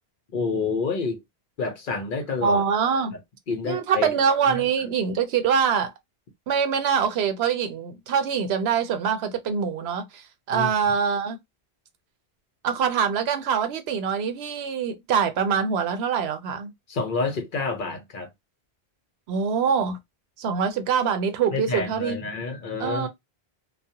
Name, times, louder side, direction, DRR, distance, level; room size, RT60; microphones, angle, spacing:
voice 1, 0.3-1.2 1.6-2.6 3.5-4.1 4.5-4.6 10.5-10.7 16.9-18.3 21.5-23.1, left 4 dB, 55° left, 0.7 m, -28 dB
voice 2, 2.4-3.2 3.6-5.9 6.5-11.4 12.6-16.7 19.3-20.0 20.4-22.2 22.8-23.1, right 6 dB, 75° right, 0.8 m, -24 dB
2.3 x 2.1 x 2.7 m
omnidirectional pair, 1.1 m